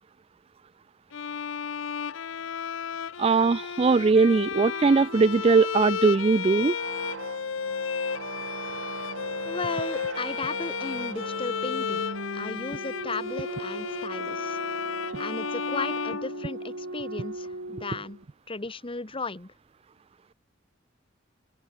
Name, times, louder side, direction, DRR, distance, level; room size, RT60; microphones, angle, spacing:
Bowed string instrument, 1.1-17.0, left 7 dB, 80° left, 0.6 m, -33 dB
voice 1, 3.2-6.8, right 4 dB, 30° right, 0.4 m, -20 dB
sound 1, 4.5-18.2, right 2 dB, 85° right, 3.2 m, -38 dB
voice 2, 9.4-12.0 12.3-14.6 15.2-18.2 18.5-19.5, left 3 dB, 25° left, 1.2 m, -35 dB
open air
head